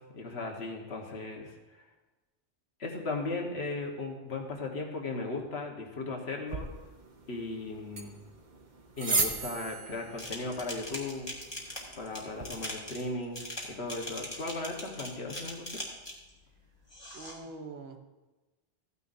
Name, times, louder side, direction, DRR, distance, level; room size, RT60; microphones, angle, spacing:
voice 1, 0.0-1.5 2.8-6.7 7.3-8.2 9.0-11.3 12.0-13.4 13.7-15.7, left 3 dB, 65° left, 1 dB, 1.6 m, -36 dB
sound 1, 6.5-12.5, right 4 dB, 45° right, 0.9 m, -37 dB
sound 2, 10.2-16.3 16.9-17.4, left 1 dB, 20° left, 1.8 m, -41 dB
voice 2, 17.1-18.0, right 3 dB, 65° right, 5 dB, 1.1 m, -44 dB
14.5 x 9.5 x 2.6 m, 1.1 s
omnidirectional pair, 1.2 m